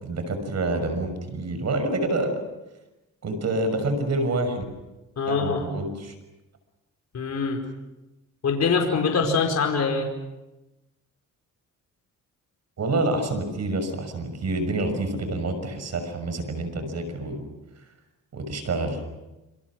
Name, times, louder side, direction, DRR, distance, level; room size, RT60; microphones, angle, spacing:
voice 1, 0.0-2.4 3.2-4.6 5.3-6.1 12.8-17.4 18.3-19.0, right 2 dB, 55° right, 8 dB, 6.2 m, -27 dB
voice 2, 5.2-5.7 7.1-7.6 8.4-10.1, left 5 dB, 55° left, 3 dB, 5.0 m, -23 dB
28.0 x 27.0 x 6.2 m, 1.0 s
cardioid pair, 105°, 32 cm